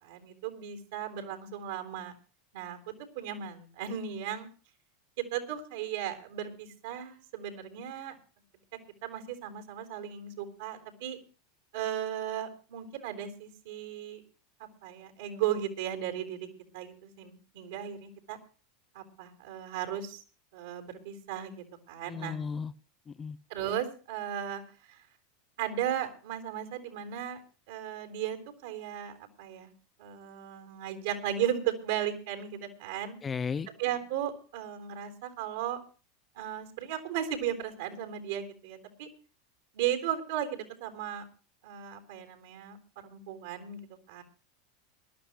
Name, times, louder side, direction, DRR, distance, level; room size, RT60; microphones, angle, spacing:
voice 1, 0.0-2.1 2.5-2.8 3.1-4.5 5.2-8.2 9.0-11.2 11.7-14.2 14.8-16.5 16.7-18.4 18.9-20.2 20.5-22.4 23.5-24.6 24.9-25.0 25.6-27.4 27.7-29.7 30.0-33.2 33.8-35.8 36.4-39.1 39.7-41.3 41.6-43.8 44.1-44.2, right 10 dB, 65° right, 7 dB, 3.8 m, -36 dB
voice 2, 22.1-22.7 23.1-23.4 33.2-33.7, left 6 dB, 25° left, 14 dB, 0.7 m, -34 dB
22.0 x 12.5 x 3.0 m, 0.37 s
hypercardioid pair, 85°, 0 cm